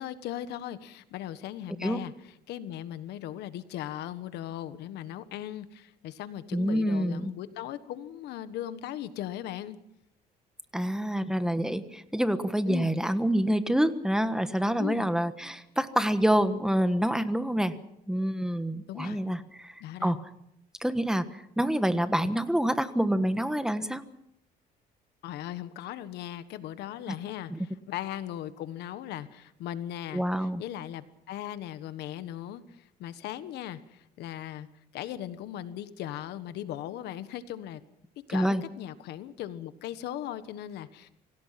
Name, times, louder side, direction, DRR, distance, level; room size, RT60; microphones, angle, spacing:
voice 1, 0.0-9.8 12.7-12.9 14.8-15.1 18.9-19.2 19.8-20.1 25.2-34.7 34.9-37.8 38.3-41.1, left 12 dB, 80° left, 12 dB, 1.4 m, -38 dB
voice 2, 6.5-7.3 10.7-17.8 18.1-19.7 20.0-20.2 20.8-21.2 21.6-24.0 27.5-27.6 30.1-30.6 38.3-38.6, equal, 5° right, 11 dB, 1.3 m, -27 dB
26.0 x 17.0 x 5.9 m, 0.77 s
cardioid pair, 110°, 17 cm